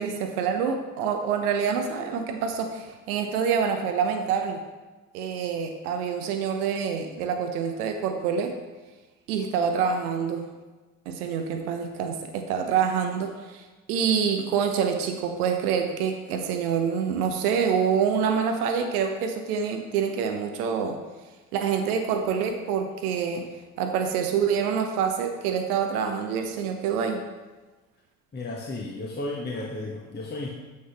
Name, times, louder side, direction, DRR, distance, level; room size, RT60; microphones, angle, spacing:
voice 1, 0.0-4.6 5.1-8.5 9.3-10.5 11.1-21.0 21.5-23.5 23.8-27.2, right 7 dB, 65° right, 5 dB, 1.0 m, -26 dB
voice 2, 28.3-30.5, left 2 dB, 20° left, -2 dB, 1.4 m, -33 dB
9.6 x 8.1 x 3.5 m, 1.2 s
figure-of-eight pair, 50°, 47 cm